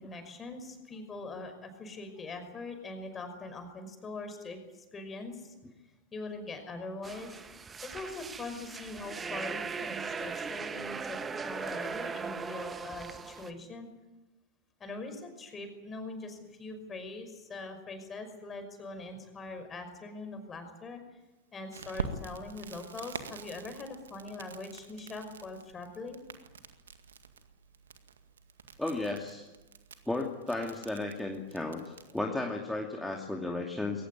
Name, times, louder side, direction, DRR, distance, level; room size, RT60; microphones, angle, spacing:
voice 1, 0.0-5.5 6.1-13.9 14.8-21.0 21.5-26.2, left 3 dB, 20° left, 7 dB, 5.6 m, -42 dB
sound 1, 7.0-13.5, right 5 dB, 15° right, 1.5 m, -39 dB
Crackle, 21.7-32.2, right 5 dB, 65° right, 2.0 m, -45 dB
voice 2, 28.8-29.5 30.1-34.0, left 2 dB, 5° left, 1 dB, 2.6 m, -34 dB
22.5 x 19.0 x 9.6 m, 1.1 s
figure-of-eight pair, 90°, 0 cm